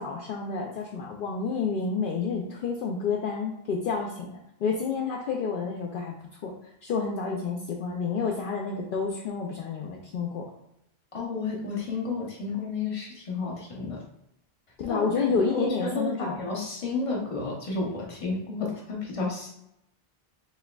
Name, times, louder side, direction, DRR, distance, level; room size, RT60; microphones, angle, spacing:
voice 1, 0.0-6.5 6.8-10.5 14.8-16.5, left 5 dB, 65° left, 0 dB, 0.7 m, -29 dB
voice 2, 11.1-14.0 14.9-15.1 15.5-19.5, left 3 dB, 35° left, -2 dB, 0.9 m, -31 dB
4.4 x 3.4 x 2.3 m, 0.82 s
omnidirectional pair, 1.0 m